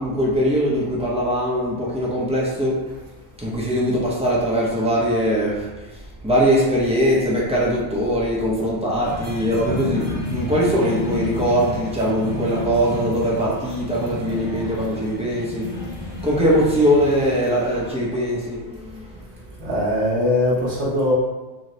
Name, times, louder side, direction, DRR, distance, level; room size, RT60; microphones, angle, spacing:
voice 1, 0.0-2.9 3.4-15.7 16.2-19.2, equal, 10° right, -6 dB, 0.5 m, -21 dB
sound 1, 9.0-17.9, left 2 dB, 30° left, 1.0 m, -31 dB
voice 2, 19.6-21.1, left 1 dB, 75° right, -7 dB, 1.1 m, -21 dB
2.9 x 2.1 x 3.8 m, 1.1 s
omnidirectional pair, 1.2 m